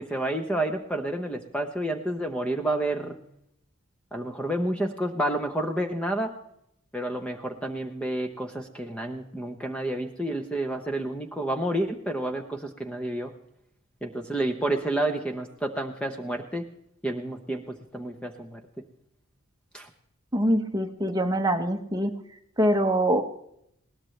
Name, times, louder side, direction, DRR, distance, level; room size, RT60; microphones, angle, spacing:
voice 1, 0.0-3.2 4.1-6.3 6.9-13.3 14.0-16.6 17.0-18.6 19.7-19.9, right 1 dB, 5° left, 4 dB, 0.8 m, -30 dB
voice 2, 20.3-22.1 22.6-23.2, right 1 dB, 20° right, 6 dB, 1.0 m, -24 dB
21.0 x 18.0 x 3.2 m, 0.75 s
head